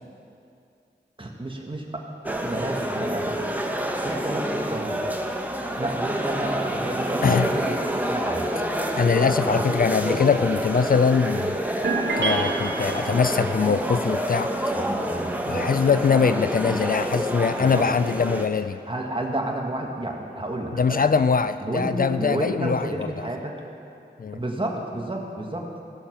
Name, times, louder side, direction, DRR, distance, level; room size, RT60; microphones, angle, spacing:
voice 1, 1.2-3.4 4.0-5.0 5.8-7.8 8.1-8.5 9.5-9.7 14.7-15.7 17.6-17.9 18.9-21.2 21.6-23.6 24.3-25.7, right 1 dB, 30° right, 0 dB, 1.7 m, -31 dB
sound 1, 2.2-18.5, right 1 dB, 10° right, 1.0 m, -28 dB
voice 2, 9.0-11.6 12.2-14.7 15.5-18.8 20.7-23.3 24.2-24.4, left 5 dB, 50° left, 11 dB, 0.4 m, -22 dB
sound 2, 11.8-13.6, right 3 dB, 75° right, 1.4 m, -28 dB
16.0 x 6.5 x 6.3 m, 2.5 s
wide cardioid pair, 65°, 18 cm